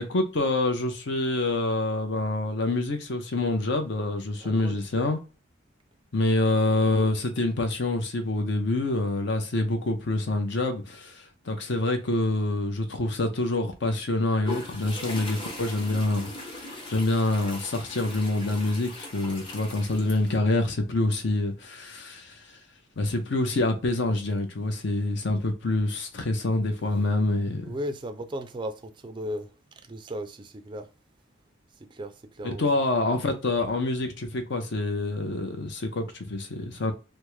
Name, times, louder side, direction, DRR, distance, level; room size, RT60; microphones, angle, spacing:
voice 1, 0.0-5.2 6.1-22.5 23.0-27.7 32.4-36.9, left 2 dB, 60° left, 0.7 m, -26 dB
voice 2, 4.4-4.8 27.6-30.9 31.8-32.7, equal, 25° right, 0.3 m, -36 dB
sound 1, 14.4-20.4, left 2 dB, 25° left, 0.7 m, -39 dB
3.4 x 2.0 x 3.1 m
head